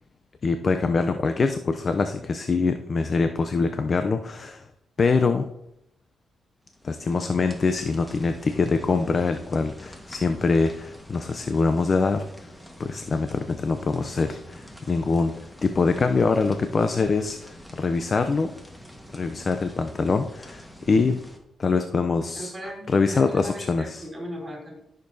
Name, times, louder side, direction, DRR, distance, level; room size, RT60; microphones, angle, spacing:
voice 1, 0.4-4.6 5.0-5.5 6.8-12.2 12.8-15.3 15.6-18.5 19.1-21.2 21.6-22.5 22.9-24.1, left 4 dB, 40° left, 8 dB, 0.5 m, -24 dB
sound 1, 6.6-21.4, equal, 5° left, 1.4 m, -46 dB
voice 2, 22.4-24.8, equal, 20° right, -2 dB, 3.7 m, -37 dB
13.5 x 6.6 x 2.7 m, 0.80 s
cardioid pair, 95°, 0 cm